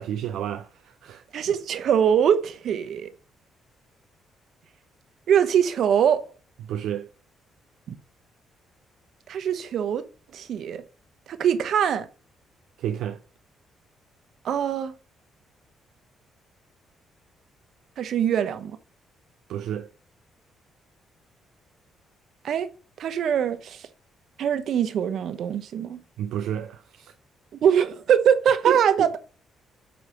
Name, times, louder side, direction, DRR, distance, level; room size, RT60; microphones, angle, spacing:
voice 1, 0.0-1.2 6.6-7.1 12.8-13.2 19.5-19.9 26.2-27.1 28.7-29.1, right 10 dB, 85° right, 0.4 m, -30 dB
voice 2, 1.3-3.1 5.3-6.3 7.9-8.0 9.3-10.0 10.3-10.8 11.3-12.1 14.4-14.9 18.0-18.8 22.4-22.7 23.0-23.9 24.4-26.0 27.6-29.2, right 8 dB, 70° right, 0.8 m, -23 dB
7.8 x 3.3 x 5.3 m
cardioid pair, 90°, 0 cm